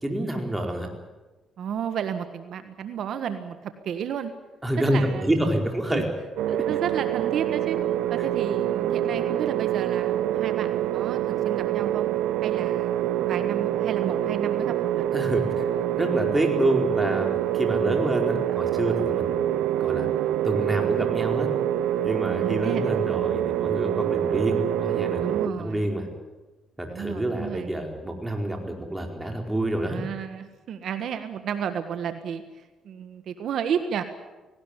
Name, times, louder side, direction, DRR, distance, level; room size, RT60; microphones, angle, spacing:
voice 1, 0.0-0.9 4.6-6.0 15.1-15.6 15.9-19.4 19.8-20.1 20.4-21.5 22.0-26.1 26.8-30.0, right 1 dB, 15° right, 2 dB, 4.6 m, -27 dB
voice 2, 1.6-4.3 4.9-5.3 5.9-6.0 6.5-7.8 8.1-12.1 12.4-15.2 22.3-23.0 25.2-25.9 26.9-27.8 29.9-32.4 32.8-34.0, right 8 dB, 70° right, 9 dB, 1.4 m, -32 dB
sound 1, 6.4-25.5, right 12 dB, 90° right, 0.7 m, -26 dB
18.5 x 18.0 x 9.9 m, 1.2 s
cardioid pair, 90°, 0 cm